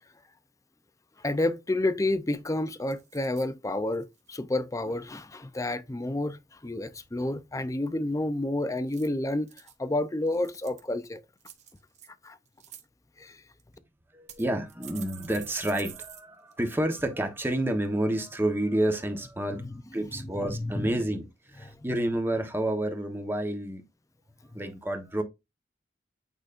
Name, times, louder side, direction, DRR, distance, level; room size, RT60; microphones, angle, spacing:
voice 1, 1.2-9.5 9.8-11.2 12.2-12.4 13.2-13.4 20.2-20.7 21.7-21.8, left 1 dB, 15° left, 0.5 m, -30 dB
sound 1, 2.1-2.4 2.9-3.5 3.9-4.3 8.8-9.7 10.3-10.9 11.4-12.1 12.5-12.8 13.6-13.7 14.3-16.2 16.5-16.6 17.0-17.1, right 10 dB, 40° right, 1.1 m, -47 dB
voice 2, 14.1-19.6 19.9-23.8 24.5-25.2, right 1 dB, 10° right, 1.1 m, -29 dB
9.0 x 5.1 x 2.5 m
head